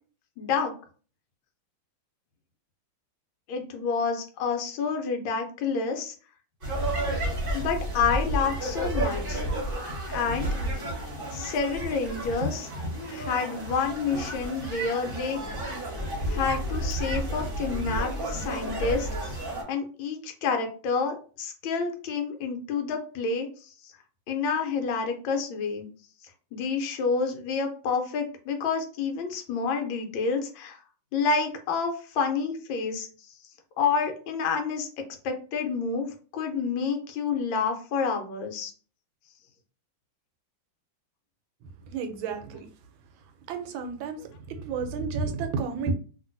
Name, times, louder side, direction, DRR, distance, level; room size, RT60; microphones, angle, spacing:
voice 1, 0.4-0.7 3.5-6.1 7.5-9.4 10.1-10.5 11.3-12.7 13.1-15.4 16.3-19.4 19.7-23.5 24.3-25.9 26.5-30.8 31.1-33.1 33.8-34.9 35.2-36.1 36.3-38.7, left 5 dB, 85° left, 4 dB, 1.4 m, -28 dB
sound 1, 6.6-19.6, right 1 dB, 35° right, 0.9 m, -31 dB
voice 2, 41.9-42.7 43.5-45.9, right 5 dB, 85° right, 7 dB, 1.4 m, -32 dB
2.9 x 2.8 x 2.6 m, 0.40 s
omnidirectional pair, 2.1 m